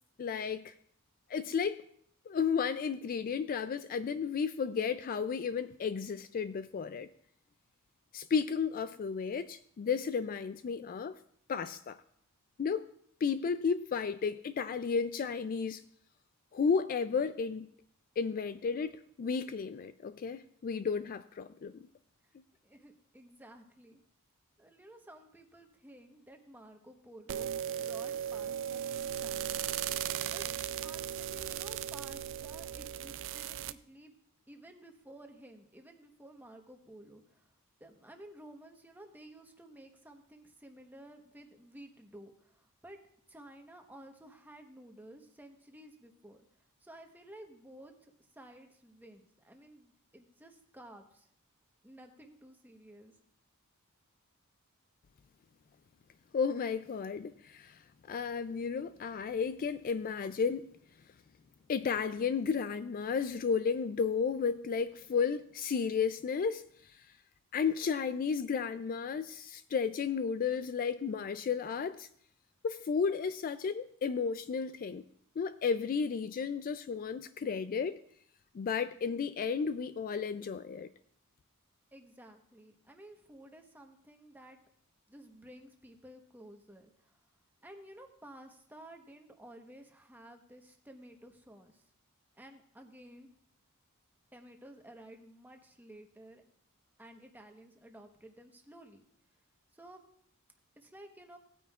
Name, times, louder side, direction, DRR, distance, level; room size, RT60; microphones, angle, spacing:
voice 1, 0.2-0.7 1.3-1.8 2.3-7.1 8.1-11.2 11.5-12.0 12.6-12.8 13.2-15.8 16.5-17.7 18.2-21.8 56.3-57.8 58.1-60.7 61.7-66.9 67.5-72.1 72.6-75.0 75.4-78.0 78.5-80.9, left 6 dB, 40° left, 0.3 m, -33 dB
voice 2, 22.6-24.0 24.6-30.5 30.8-34.1 34.5-37.5 37.8-43.0 43.3-46.4 46.8-51.3 51.8-53.1 81.9-84.6 85.1-87.2 87.6-91.8 92.4-93.3 94.3-96.4 97.0-99.0 99.7-100.0 100.8-101.4, right 1 dB, 10° right, 1.0 m, -54 dB
sound 1, 27.3-33.7, right 10 dB, 60° right, 0.4 m, -37 dB
17.5 x 9.2 x 2.4 m
head